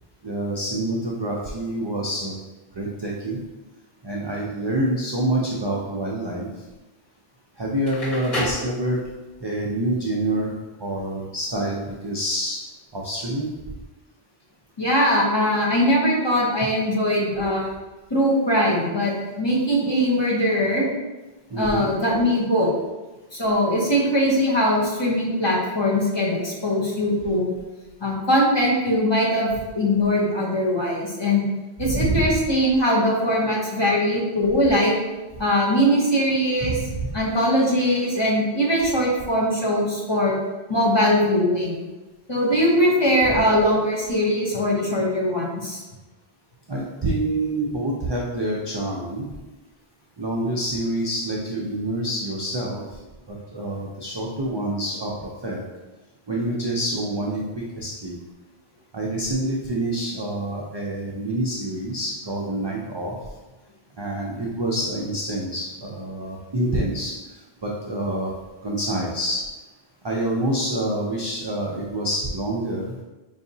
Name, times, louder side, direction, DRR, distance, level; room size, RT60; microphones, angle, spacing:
voice 1, 0.2-2.3 2.7-3.4 4.0-6.5 7.6-9.0 9.4-10.5 10.8-12.6 12.9-13.5 21.5-21.9 31.8-32.3 36.6-37.2 46.7-49.3 50.2-52.8 53.3-55.1 55.4-55.6 56.3-58.2 58.9-63.1 64.0-67.1 67.6-68.3 68.6-69.4 70.0-72.9, right 1 dB, 40° right, -3 dB, 0.4 m, -27 dB
Crackle, 7.7-9.4, left 1 dB, 45° left, 1.3 m, -30 dB
voice 2, 14.8-17.7 18.1-20.8 21.6-22.7 23.3-27.5 28.0-29.5 29.7-31.4 31.8-34.9 35.4-36.7 37.1-40.3 40.7-41.7 42.3-45.8, equal, 30° left, -5 dB, 0.8 m, -21 dB
4.7 x 2.8 x 2.7 m, 1.1 s
omnidirectional pair, 1.0 m